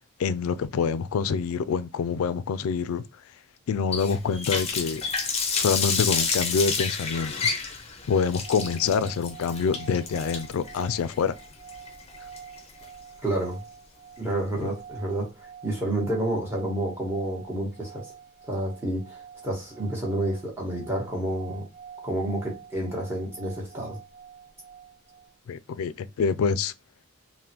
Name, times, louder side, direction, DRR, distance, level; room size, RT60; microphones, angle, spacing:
voice 1, 0.2-3.0 3.7-5.0 5.5-7.3 8.1-11.3 14.6-14.7 25.5-26.7, left 6 dB, 80° left, 0.3 m, -26 dB
Water tap faucet, 3.9-12.8, left 5 dB, 30° left, 0.5 m, -29 dB
sound 1, 8.2-25.3, right 7 dB, 50° right, 0.5 m, -47 dB
voice 2, 13.2-13.6 14.2-18.1 18.5-21.7 22.0-24.0, right 1 dB, 10° right, 1.0 m, -29 dB
3.4 x 2.1 x 2.8 m
head